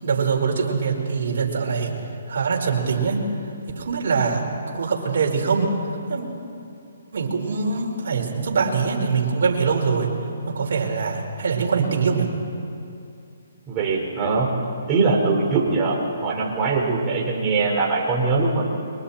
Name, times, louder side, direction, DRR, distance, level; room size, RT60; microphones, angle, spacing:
voice 1, 0.0-2.0 2.3-4.4 4.7-5.7 6.1-6.2 7.1-10.1 10.5-12.3, right 5 dB, 65° right, 0 dB, 4.9 m, -23 dB
voice 2, 13.7-14.5 14.9-16.0 16.2-18.6, right 4 dB, 25° right, -3 dB, 5.0 m, -21 dB
30.0 x 24.0 x 4.5 m, 2.6 s
hypercardioid pair, 145°, 0 cm